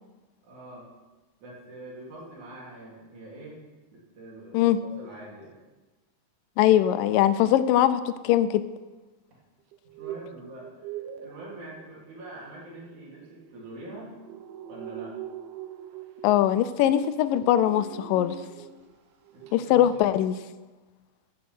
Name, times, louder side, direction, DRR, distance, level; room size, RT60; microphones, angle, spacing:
voice 1, 0.4-0.9 1.4-3.6 3.9-5.5 10.0-14.1 14.7-15.2 19.3-20.1, right 1 dB, 60° right, -5 dB, 4.6 m, -44 dB
voice 2, 6.6-8.6 16.2-18.4 19.5-20.4, left 12 dB, 85° left, 13 dB, 2.3 m, -21 dB
sound 1, 9.7-19.0 19.3-19.6 19.8-19.9, right 10 dB, 80° right, 1.4 m, -43 dB
14.0 x 7.4 x 6.1 m, 1.2 s
omnidirectional pair, 3.9 m